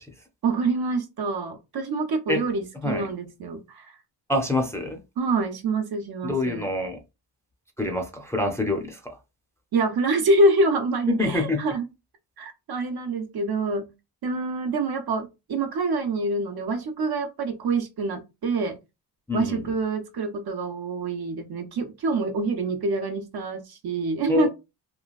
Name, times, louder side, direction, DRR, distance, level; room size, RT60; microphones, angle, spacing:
voice 1, 0.4-3.9 5.2-6.7 9.7-11.9 12.4-13.9 14.2-18.8 19.3-24.5, right 2 dB, 60° right, 0.8 m, -26 dB
voice 2, 4.3-5.0 6.2-7.0 7.8-9.2 11.1-11.6 19.3-19.7 24.3-24.5, left 2 dB, 5° left, 0.5 m, -26 dB
3.0 x 2.3 x 2.3 m
cardioid pair, 80°, 42 cm